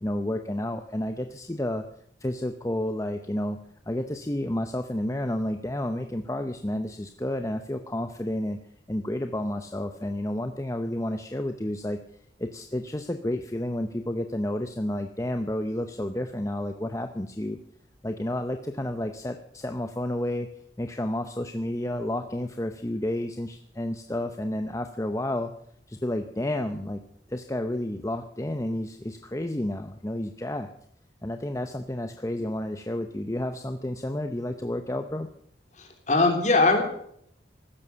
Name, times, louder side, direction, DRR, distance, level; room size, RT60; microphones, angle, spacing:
voice 1, 0.0-1.8 2.2-3.6 3.9-8.6 8.9-12.0 12.4-17.6 18.0-20.5 20.8-25.5 25.9-27.0 27.3-30.7 31.2-35.3, left 1 dB, 15° left, 7 dB, 0.7 m, -31 dB
voice 2, 35.8-36.8, left 3 dB, 40° left, 4 dB, 3.3 m, -21 dB
15.5 x 12.5 x 6.9 m, 0.69 s
head